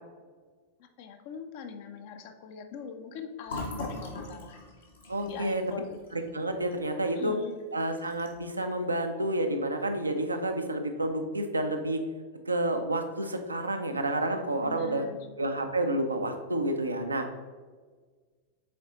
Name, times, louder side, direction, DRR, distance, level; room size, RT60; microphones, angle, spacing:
voice 1, 0.8-4.6 5.2-6.0 7.1-7.6 14.6-15.3, left 6 dB, 50° left, 6 dB, 0.7 m, -42 dB
Fill (with liquid), 3.4-7.1 7.5-7.6 7.9-8.5, left 2 dB, 70° left, 1.4 m, -41 dB
voice 2, 5.1-5.6 6.1-7.3 7.7-12.0 12.5-15.1 15.4-17.3, right 1 dB, 80° right, 5 dB, 0.6 m, -29 dB
8.4 x 4.0 x 2.9 m, 1.5 s
figure-of-eight pair, 90°, 0 cm